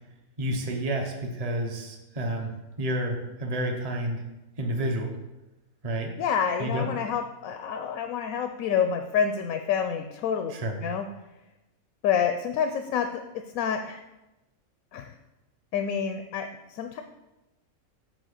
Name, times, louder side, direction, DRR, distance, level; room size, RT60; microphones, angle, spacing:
voice 1, 0.4-2.5 2.8-4.2 4.6-5.1 5.8-6.1 6.6-6.9 10.5-10.8, right 1 dB, 30° right, 3 dB, 0.9 m, -30 dB
voice 2, 6.2-10.5 10.8-11.1 12.0-13.2 13.5-14.0 14.9-15.1 15.7-17.0, left 7 dB, 80° left, 6 dB, 1.0 m, -28 dB
6.2 x 4.4 x 6.5 m, 0.99 s
omnidirectional pair, 1.5 m